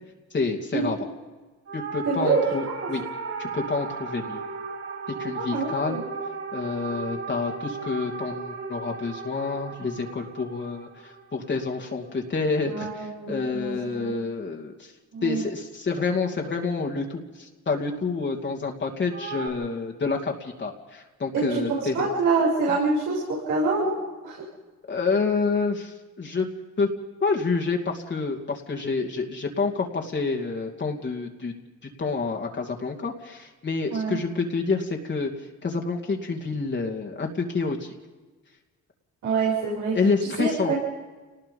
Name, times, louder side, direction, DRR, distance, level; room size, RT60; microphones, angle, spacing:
voice 1, 0.3-1.0 1.7-3.0 3.4-4.4 5.2-6.0 6.5-14.9 15.2-22.1 22.7-22.8 24.9-26.5 26.8-26.9 27.2-31.5 31.8-35.3 35.6-37.9 39.9-40.7, left 4 dB, 35° left, 1 dB, 2.6 m, -28 dB
sound 1, 1.7-12.2 19.1-19.5, right 4 dB, 55° right, 7.2 m, -36 dB
voice 2, 2.1-2.4 2.8-2.9 5.3-6.0 12.7-14.1 15.1-15.4 21.3-24.0 24.2-24.4 33.9-34.2 39.2-39.9 40.4-40.8, right 4 dB, 80° right, -5 dB, 6.9 m, -26 dB
28.5 x 19.5 x 5.5 m, 1.3 s
cardioid pair, 90°, 30 cm